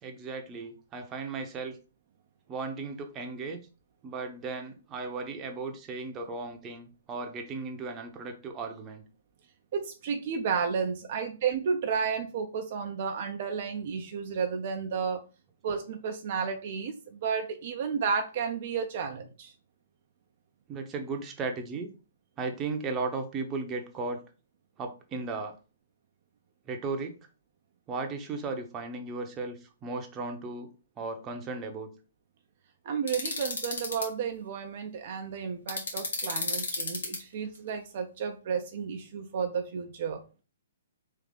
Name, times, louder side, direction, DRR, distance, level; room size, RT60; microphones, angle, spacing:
voice 1, 0.0-1.8 2.5-3.6 4.0-9.0 20.7-21.9 22.4-24.2 24.8-25.5 26.7-27.1 27.9-30.7 31.0-31.9, right 3 dB, 20° right, 4 dB, 0.8 m, -36 dB
voice 2, 9.7-15.2 15.6-19.5 32.8-40.2, right 6 dB, 50° right, 4 dB, 0.5 m, -32 dB
sound 1, 33.1-34.0 35.7-37.2, left 3 dB, 75° left, 1.6 m, -32 dB
3.5 x 2.7 x 4.0 m, 0.34 s
hypercardioid pair, 135°, 0 cm